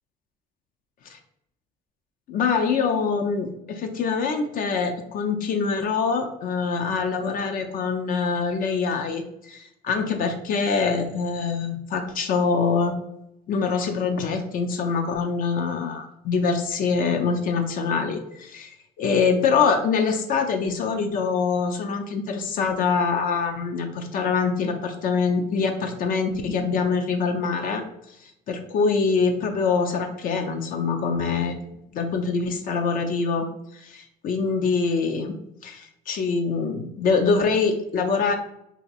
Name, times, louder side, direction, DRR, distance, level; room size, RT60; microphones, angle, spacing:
voice 1, 2.3-12.9 13.5-18.7 19.0-27.8 28.2-31.6 31.9-33.5 33.7-38.4, left 5 dB, 55° left, 5 dB, 0.5 m, -24 dB
2.8 x 2.6 x 4.0 m, 0.79 s
cardioid pair, 110°, 17 cm